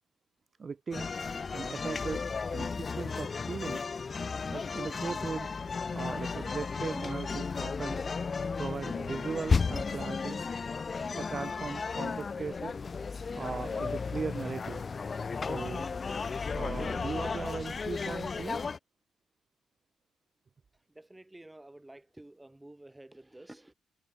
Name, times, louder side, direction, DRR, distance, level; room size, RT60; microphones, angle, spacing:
voice 1, 0.6-1.1 1.5-3.9 4.5-5.5 5.9-8.0 8.6-10.4 11.1-12.8 13.3-14.9 15.5-15.9 16.5-18.6, right 5 dB, 40° right, 0.5 m, -38 dB
sound 1, 0.9-18.8, left 5 dB, 40° left, 0.7 m, -34 dB
voice 2, 20.7-23.7, right 1 dB, 10° right, 2.0 m, -51 dB
supercardioid pair, 70°, 0 cm